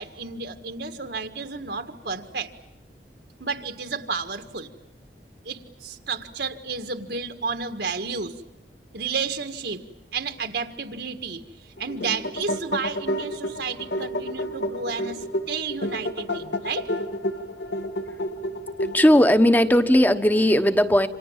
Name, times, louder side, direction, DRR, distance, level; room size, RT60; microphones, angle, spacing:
voice 1, 0.0-2.5 3.4-4.7 5.5-8.4 8.9-9.8 10.1-16.9, right 5 dB, 70° right, 7 dB, 1.8 m, -32 dB
sound 1, 11.8-19.4, left 1 dB, 75° left, 2.1 m, -30 dB
voice 2, 18.9-21.1, equal, 10° left, 10 dB, 1.2 m, -17 dB
29.0 x 27.0 x 7.4 m, 0.99 s
head